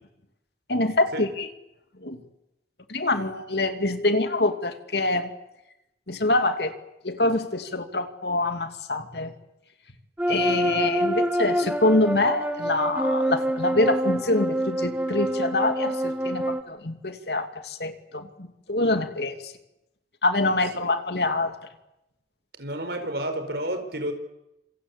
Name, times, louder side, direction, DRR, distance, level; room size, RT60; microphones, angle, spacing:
voice 1, 0.7-1.5 2.0-2.2 2.9-5.3 6.1-6.7 7.0-9.3 10.3-19.5 20.2-21.5, left 2 dB, 70° left, 8 dB, 2.6 m, -25 dB
sound 1, 10.2-16.6, right 1 dB, 10° right, 1.6 m, -26 dB
voice 2, 22.6-24.1, right 1 dB, 65° right, 8 dB, 4.5 m, -30 dB
27.0 x 25.5 x 8.5 m, 0.89 s
head